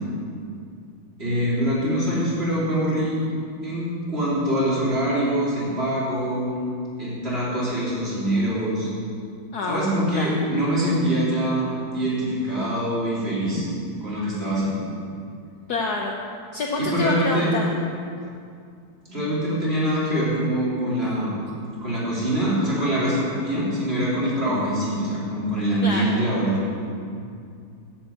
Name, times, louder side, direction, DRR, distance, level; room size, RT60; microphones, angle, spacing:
voice 1, 1.2-3.2 3.6-6.6 7.0-8.9 9.7-13.6 14.0-14.8 16.8-17.5 19.1-21.3 21.8-26.6 27.1-27.2, right 1 dB, 30° right, -8 dB, 3.4 m, -24 dB
voice 2, 9.5-10.3 15.7-16.2 16.5-17.6 25.8-26.1, left 3 dB, 60° left, 0 dB, 1.1 m, -27 dB
10.5 x 5.9 x 8.1 m, 2.4 s
omnidirectional pair, 2.3 m